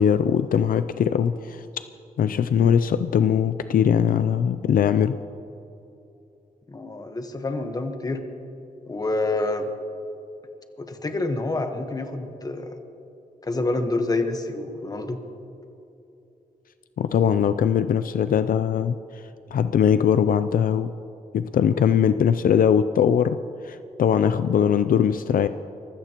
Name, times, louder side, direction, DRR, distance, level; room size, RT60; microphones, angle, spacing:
voice 1, 0.0-1.7 2.2-5.1 17.0-19.0 19.5-20.9 21.3-23.4 23.6-25.5, left 8 dB, 70° left, 11 dB, 0.4 m, -21 dB
voice 2, 6.7-8.2 8.9-9.7 10.8-12.7 13.4-15.2, left 2 dB, 25° left, 6 dB, 1.2 m, -27 dB
24.5 x 16.0 x 3.0 m, 2.9 s
wide cardioid pair, 145°, 15 cm